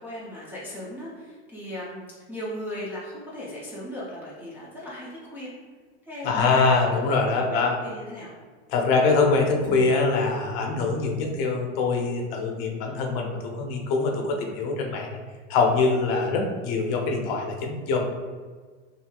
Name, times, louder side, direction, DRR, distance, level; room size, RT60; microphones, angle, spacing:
voice 1, 0.0-5.5 6.1-8.3, equal, 5° right, -9 dB, 0.3 m, -37 dB
voice 2, 6.2-7.8 8.7-15.2 15.5-18.1, left 4 dB, 55° left, 1 dB, 0.6 m, -24 dB
2.9 x 2.7 x 2.2 m, 1.5 s
supercardioid pair, 125°, 35 cm